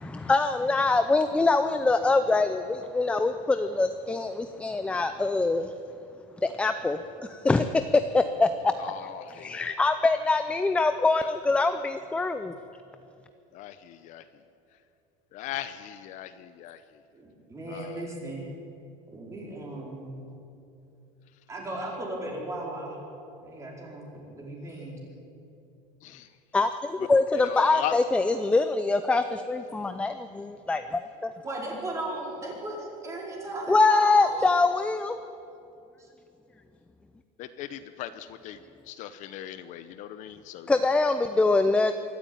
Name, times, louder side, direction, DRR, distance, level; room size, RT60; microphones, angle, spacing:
voice 1, 0.0-5.7 6.4-7.7 7.9-8.7 9.3-12.5 26.5-31.3 33.7-35.2 40.7-42.1, left 3 dB, 5° left, 9 dB, 0.5 m, -24 dB
voice 2, 8.8-9.6 13.5-14.2 15.3-16.8 17.7-18.1 26.0-26.3 27.4-28.0 37.4-38.6 38.9-40.7, left 12 dB, 50° left, 11 dB, 0.8 m, -38 dB
voice 3, 17.1-18.5 19.1-20.2 21.5-23.0 23.4-25.0 31.4-34.4, right 1 dB, 20° right, -2 dB, 4.6 m, -36 dB
24.0 x 13.5 x 9.1 m, 2.8 s
cardioid pair, 165°, 17 cm